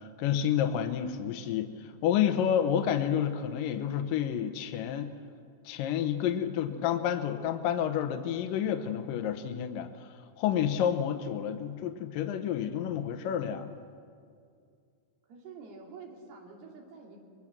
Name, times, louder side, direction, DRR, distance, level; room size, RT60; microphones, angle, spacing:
voice 1, 0.0-5.1 5.7-9.9 10.4-13.8, left 9 dB, 70° left, 6 dB, 2.4 m, -29 dB
voice 2, 15.3-17.2, right 4 dB, 75° right, 1 dB, 4.6 m, -48 dB
22.5 x 21.5 x 7.4 m, 2.3 s
omnidirectional pair, 4.5 m